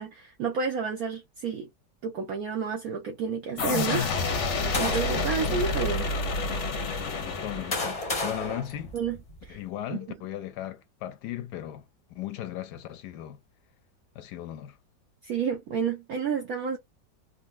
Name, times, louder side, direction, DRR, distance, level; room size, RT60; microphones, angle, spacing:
voice 1, 0.0-1.7 2.0-4.5 4.7-6.1 8.9-9.6 9.9-10.0 15.2-16.8, right 6 dB, 65° right, 1.0 m, -30 dB
sound 1, 3.6-8.2, left 3 dB, 60° left, 0.8 m, -29 dB
sound 2, 4.7-5.4 6.2-6.3 7.2-9.5, left 2 dB, 30° left, 0.6 m, -33 dB
voice 2, 7.1-8.9 9.5-13.4 14.1-14.8, left 12 dB, 75° left, 1.1 m, -37 dB
3.8 x 2.2 x 2.5 m
omnidirectional pair, 2.0 m